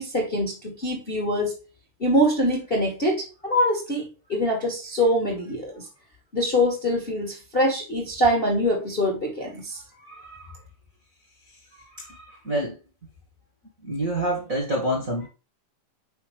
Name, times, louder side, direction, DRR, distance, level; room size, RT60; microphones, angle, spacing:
voice 1, 0.0-1.5 2.0-5.8 6.3-9.8, equal, 25° left, 1.6 m, -24 dB
voice 2, 9.9-10.6 11.8-12.8 13.8-15.3, right 1 dB, 35° right, 1.6 m, -28 dB
5.8 x 5.4 x 3.2 m
omnidirectional pair, 3.7 m